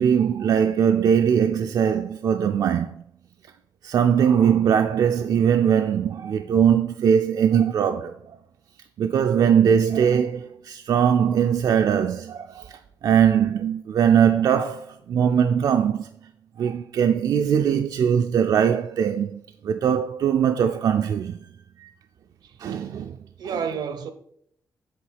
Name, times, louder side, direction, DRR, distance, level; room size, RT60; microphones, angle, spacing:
voice 1, 0.0-3.0 3.8-8.2 9.0-16.1 16.6-21.4 21.8-21.9 22.6-23.1 23.4-23.7, right 8 dB, 65° right, 0.4 m, -21 dB
voice 2, 22.4-24.1, right 7 dB, 85° right, 0.8 m, -33 dB
7.7 x 3.5 x 5.6 m
wide cardioid pair, 160°, 7 cm